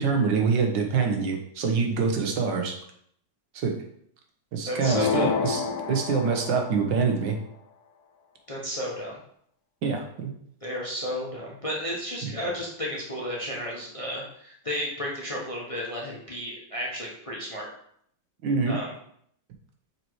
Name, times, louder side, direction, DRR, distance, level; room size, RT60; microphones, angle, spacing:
voice 1, 0.0-2.7 3.5-3.7 4.5-5.6 5.9-7.3 9.8-10.3 12.2-12.3 18.4-18.8, right 5 dB, 80° right, 3 dB, 1.7 m, -25 dB
voice 2, 4.7-5.3 8.5-9.2 10.6-17.7 18.7-18.9, equal, 25° left, -3 dB, 0.9 m, -33 dB
sound 1, 4.8-6.9, left 6 dB, 70° left, 1.1 m, -28 dB
5.9 x 4.5 x 4.6 m, 0.67 s
omnidirectional pair, 2.0 m